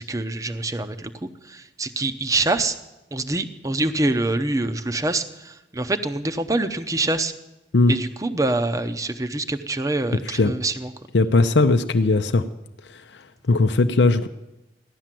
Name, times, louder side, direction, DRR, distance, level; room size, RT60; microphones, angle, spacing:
voice 1, 0.0-2.8 3.1-7.3 7.9-10.9, right 2 dB, 20° right, 9 dB, 0.7 m, -25 dB
voice 2, 11.1-12.4 12.9-14.3, left 3 dB, 80° left, 8 dB, 0.6 m, -19 dB
15.0 x 11.5 x 7.6 m, 0.96 s
head